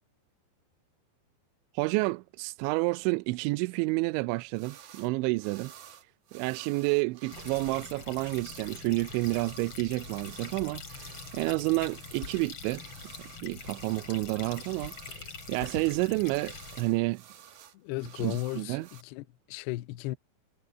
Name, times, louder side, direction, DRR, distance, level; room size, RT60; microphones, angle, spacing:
voice 1, 1.7-5.7 6.3-12.8 13.4-17.2 18.2-18.9, right 24 dB, 85° right, 2.9 m, -30 dB
sound 1, 4.5-5.1 5.4-19.0, right 9 dB, 55° right, 2.3 m, -52 dB
sound 2, 7.3-16.8, left 5 dB, 35° left, 2.9 m, -44 dB
voice 2, 17.7-20.2, left 17 dB, 80° left, 2.5 m, -35 dB
omnidirectional pair, 5.3 m